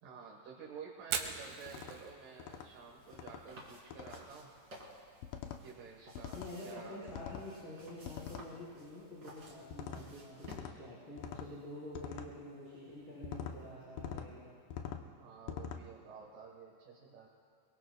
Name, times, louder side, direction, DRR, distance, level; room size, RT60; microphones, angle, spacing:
voice 1, 0.0-4.5 5.6-7.2 15.2-17.3, right 5 dB, 65° right, -1 dB, 2.7 m, -51 dB
Fire, 1.0-14.9, right 7 dB, 85° right, 3.0 m, -50 dB
sound 1, 1.7-2.0 2.4-2.7 3.1-3.4 3.9-4.2 5.2-5.6 6.2-6.5 7.1-7.5 8.1-8.5 9.7-10.0 10.4-10.8 11.2-11.5 11.9-12.3 13.2-13.6 14.0-14.3 14.7-15.0 15.5-15.8, left 8 dB, 75° left, 2.4 m, -44 dB
sound 2, 2.5-10.6, right 1 dB, 30° right, 3.0 m, -56 dB
voice 2, 6.3-14.4, left 1 dB, 30° left, -12 dB, 4.8 m, -48 dB
24.0 x 22.5 x 2.3 m, 2.6 s
omnidirectional pair, 4.4 m